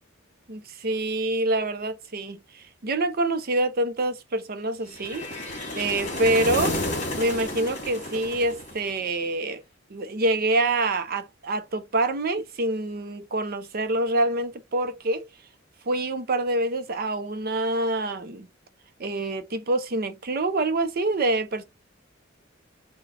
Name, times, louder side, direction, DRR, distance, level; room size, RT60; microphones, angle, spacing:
voice 1, 0.5-6.8 7.2-9.6 9.9-15.3 15.9-18.5 19.0-21.6, right 2 dB, 50° right, 0.6 m, -26 dB
sound 1, 4.9-9.2, left 1 dB, 40° left, 1.8 m, -31 dB
4.0 x 2.2 x 4.2 m
head